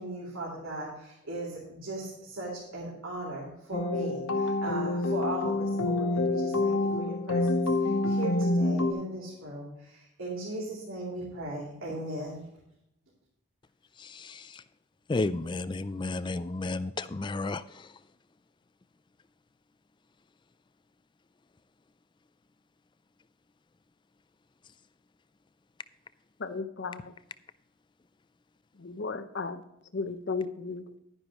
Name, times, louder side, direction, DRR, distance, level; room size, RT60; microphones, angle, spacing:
voice 1, 0.0-12.4, right 1 dB, 75° right, 2.9 m, -38 dB
sound 1, 3.7-8.9, left 2 dB, 80° left, 1.0 m, -27 dB
voice 2, 15.1-17.6, left 2 dB, 20° left, 0.3 m, -31 dB
voice 3, 26.4-27.1 28.8-29.6 29.9-30.9, left 4 dB, 55° left, 0.7 m, -34 dB
11.5 x 9.9 x 3.0 m
head